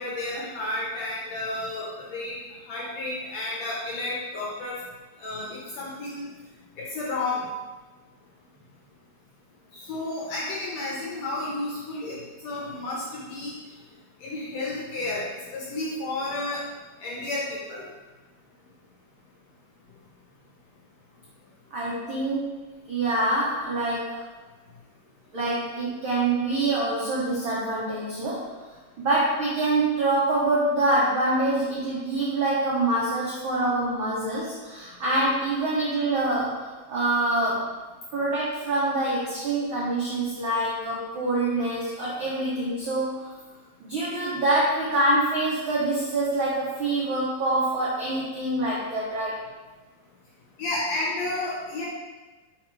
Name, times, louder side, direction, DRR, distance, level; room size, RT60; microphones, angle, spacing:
voice 1, 0.0-2.4 2.7-4.8 5.2-6.3 6.8-7.5 9.7-13.5 14.2-16.6 17.0-17.8 22.0-22.1 24.0-24.1 35.1-35.2 50.6-51.8, left 2 dB, 70° left, -4 dB, 1.6 m, -31 dB
voice 2, 21.7-24.1 25.3-28.4 29.0-37.7 38.1-43.3 43.8-49.4, right 2 dB, 85° right, -7 dB, 1.1 m, -25 dB
5.1 x 4.5 x 4.6 m, 1.3 s
omnidirectional pair, 3.9 m